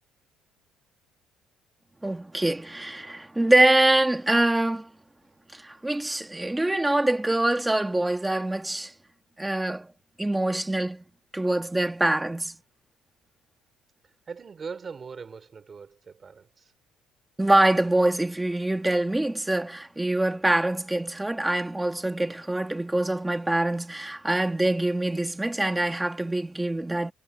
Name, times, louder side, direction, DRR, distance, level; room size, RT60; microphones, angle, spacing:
voice 1, 2.0-4.9 5.5-8.9 9.4-9.9 10.2-11.0 11.3-12.5 17.4-27.1, right 1 dB, 5° right, 1.7 m, -24 dB
voice 2, 14.3-16.7, right 5 dB, 25° right, 3.9 m, -40 dB
cardioid pair, 175°, 0 cm